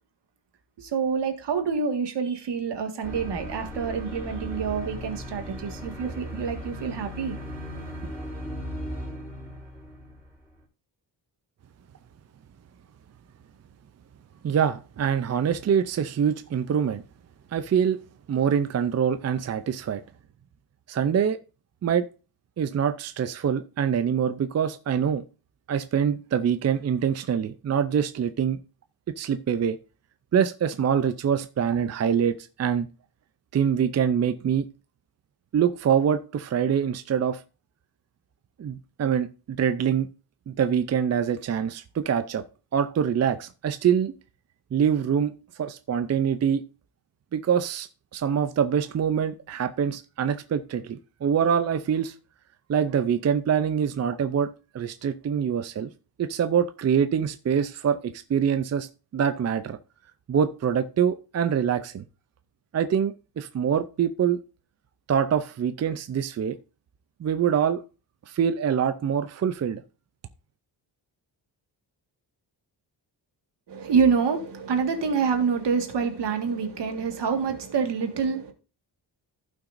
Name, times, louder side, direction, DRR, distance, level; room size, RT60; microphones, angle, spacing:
voice 1, 0.8-7.4 7.7-8.1 73.7-78.5, right 6 dB, 70° right, 1.8 m, -27 dB
sound 1, 3.0-10.6, equal, ahead, 3.9 m, -37 dB
voice 2, 14.4-17.0 17.5-18.0 18.3-20.0 20.9-21.4 21.8-22.0 22.6-25.2 25.7-28.6 29.2-29.8 30.3-32.9 33.5-34.7 35.5-37.4 38.6-40.1 40.5-42.4 42.7-44.1 44.7-46.6 47.3-52.1 52.7-55.9 56.2-58.9 59.1-59.8 60.3-62.0 62.7-64.4 65.1-66.6 67.2-67.8 68.3-69.8, right 8 dB, 40° right, 0.5 m, -25 dB
15.5 x 5.9 x 2.5 m
wide cardioid pair, 165°, 43 cm